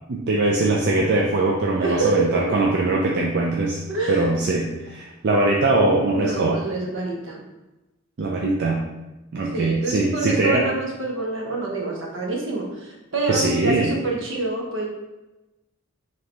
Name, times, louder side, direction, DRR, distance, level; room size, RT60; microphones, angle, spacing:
voice 1, 0.1-3.8 4.1-6.6 8.2-8.8 9.3-10.7 13.3-13.9, right 2 dB, 55° right, -1 dB, 0.4 m, -21 dB
voice 2, 1.8-2.6 3.9-4.3 6.1-7.4 9.5-14.9, right 3 dB, 75° right, -1 dB, 1.0 m, -26 dB
5.1 x 3.0 x 2.9 m, 1.0 s
head